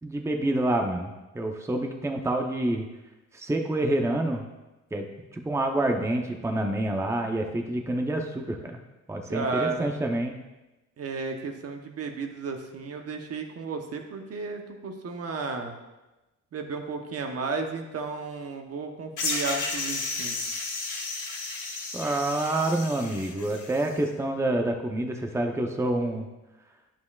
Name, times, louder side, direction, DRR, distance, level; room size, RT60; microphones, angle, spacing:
voice 1, 0.0-2.9 3.3-4.4 4.9-8.8 9.1-10.4 21.9-26.3, right 1 dB, 10° right, 3 dB, 0.7 m, -27 dB
voice 2, 9.3-9.9 11.0-15.8 16.5-20.4, right 4 dB, 55° right, 4 dB, 0.9 m, -33 dB
sound 1, 19.2-23.9, left 3 dB, 75° left, 1.6 m, -33 dB
9.2 x 7.3 x 2.4 m, 1.1 s
cardioid pair, 90°, 30 cm